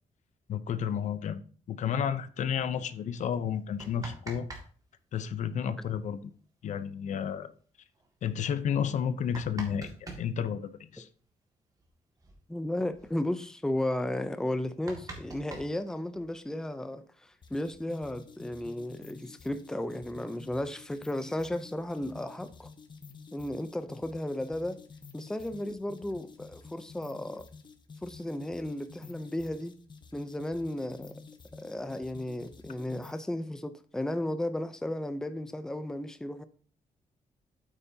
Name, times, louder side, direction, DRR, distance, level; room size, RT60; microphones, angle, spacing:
voice 1, 0.5-1.4 1.7-4.5 5.1-6.3 6.6-7.5 8.2-11.1, left 8 dB, 70° left, 0.7 m, -31 dB
sound 1, 3.6-4.7 4.9-5.0 6.8-6.9 7.2-7.3 8.0-8.1 8.9-10.3 11.8-11.9 12.2-12.4 12.7-13.1 13.6-13.7 14.1-14.2 14.5-16.4 17.3-18.1, right 2 dB, 30° right, 1.9 m, -44 dB
voice 2, 12.5-22.7 23.3-24.8 25.1-27.5 28.0-29.8 30.1-31.2 31.5-36.4, left 1 dB, 5° left, 0.6 m, -34 dB
sound 2, 17.4-33.3, left 4 dB, 35° left, 1.0 m, -50 dB
8.9 x 8.3 x 2.8 m
cardioid pair, 135°, 13 cm